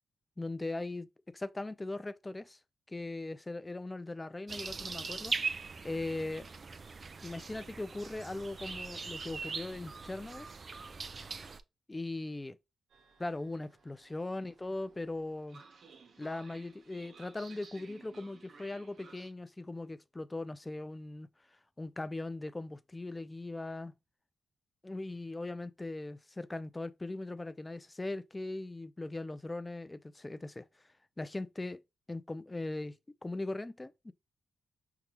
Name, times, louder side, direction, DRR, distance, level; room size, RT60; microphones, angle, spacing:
voice 1, 0.4-2.6 2.9-5.6 5.8-6.5 7.2-10.5 11.9-12.6 13.2-15.6 16.2-21.3 21.8-23.9 24.8-30.6 31.2-31.8 32.1-33.0 33.2-34.1, left 2 dB, 20° left, 0.4 m, -39 dB
sound 1, 4.5-11.6, right 4 dB, 45° right, 0.4 m, -41 dB
Train, 12.9-19.3, right 5 dB, 65° right, 0.8 m, -58 dB
5.4 x 2.2 x 3.0 m
supercardioid pair, 55°, 0 cm